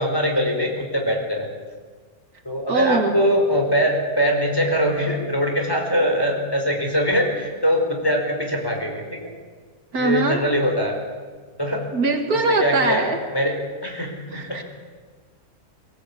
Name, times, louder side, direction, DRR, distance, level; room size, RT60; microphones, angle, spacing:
voice 1, 0.0-1.5 2.4-9.3 10.0-11.0 11.6-11.8 12.3-13.1 13.3-13.5 13.8-14.6, equal, 15° left, 1 dB, 4.9 m, -22 dB
voice 2, 2.7-3.2 9.9-10.4 11.9-13.2 14.3-14.6, right 3 dB, 75° right, 4 dB, 2.5 m, -22 dB
24.0 x 17.5 x 8.6 m, 1.5 s
omnidirectional pair, 1.6 m